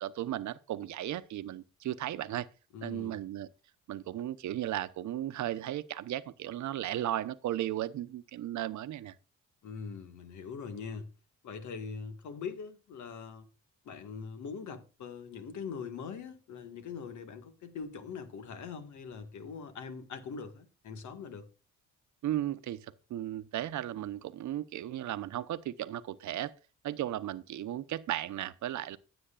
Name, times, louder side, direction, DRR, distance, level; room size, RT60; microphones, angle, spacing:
voice 1, 0.0-2.5 2.8-3.5 3.9-9.1 22.2-22.8 23.1-26.5 26.8-29.0, right 12 dB, 70° right, 0.8 m, -35 dB
voice 2, 2.7-3.2 9.6-11.1 11.4-13.5 13.8-21.5, left 5 dB, 70° left, 1.7 m, -42 dB
15.5 x 7.9 x 2.4 m
cardioid pair, 90°, 30 cm